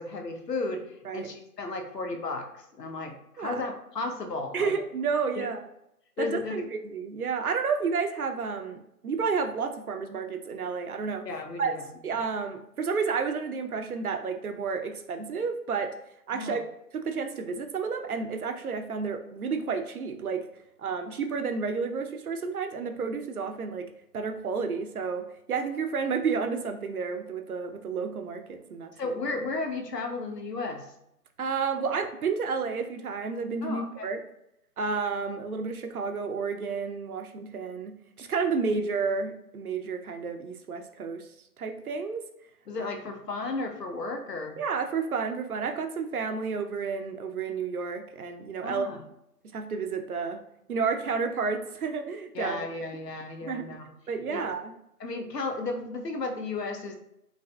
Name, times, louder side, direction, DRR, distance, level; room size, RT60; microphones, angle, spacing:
voice 1, 0.0-4.7 5.4-5.5 6.2-6.5 11.3-11.8 16.3-16.6 29.0-30.9 33.6-34.1 42.7-44.6 48.6-49.0 52.3-53.9 54.3-54.4 55.0-56.9, left 3 dB, 85° left, 4 dB, 0.8 m, -34 dB
voice 2, 4.5-5.6 6.2-11.3 11.6-11.7 12.0-15.9 16.3-16.6 16.9-20.5 20.8-23.9 24.1-28.9 31.4-34.2 34.8-41.3 41.6-42.2 44.6-48.9 49.5-50.4 50.7-52.7 53.4-53.7 54.1-54.7, right 5 dB, 65° right, 6 dB, 0.5 m, -31 dB
4.7 x 2.0 x 2.2 m, 0.81 s
figure-of-eight pair, 160°, 47 cm